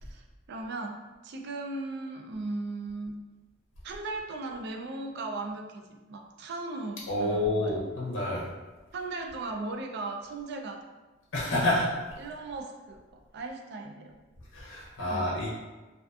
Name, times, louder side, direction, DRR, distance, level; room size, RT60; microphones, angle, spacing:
voice 1, 0.0-3.1 3.8-7.8 8.9-10.8 12.2-14.1 15.0-15.3, right 2 dB, 60° right, 3 dB, 0.3 m, -37 dB
voice 2, 7.1-8.5 11.3-11.9 14.5-15.5, left 1 dB, 90° left, -5 dB, 0.6 m, -28 dB
2.5 x 2.3 x 2.3 m, 1.2 s
head